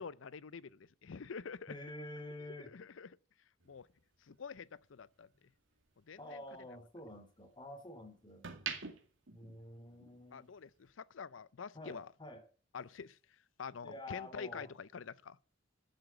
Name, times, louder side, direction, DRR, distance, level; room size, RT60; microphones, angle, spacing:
voice 1, 0.0-1.7 2.6-3.2 3.6-3.9 4.2-5.3 6.1-6.7 10.3-12.1 12.7-15.4, left 6 dB, 85° left, 0.5 m, -47 dB
voice 2, 1.7-2.7 6.2-8.5 9.3-10.5 11.7-12.4 13.8-14.7, left 1 dB, 25° left, 2.7 m, -48 dB
sound 1, 3.6-5.9 6.3-7.8 8.2-10.3 10.6-10.9, right 6 dB, 80° right, 2.2 m, -47 dB
12.0 x 7.6 x 8.0 m
head